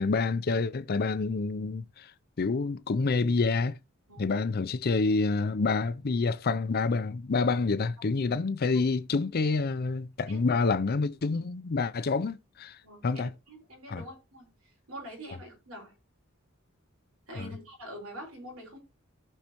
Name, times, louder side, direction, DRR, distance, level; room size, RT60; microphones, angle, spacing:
voice 1, 0.0-2.1 2.4-3.8 4.2-12.8 13.0-13.3 13.9-14.0 17.4-17.5, left 4 dB, 45° left, 0.5 m, -28 dB
voice 2, 12.8-14.5 14.9-15.9 17.3-18.8, right 1 dB, 90° right, 5.1 m, -45 dB
15.0 x 5.5 x 3.0 m
head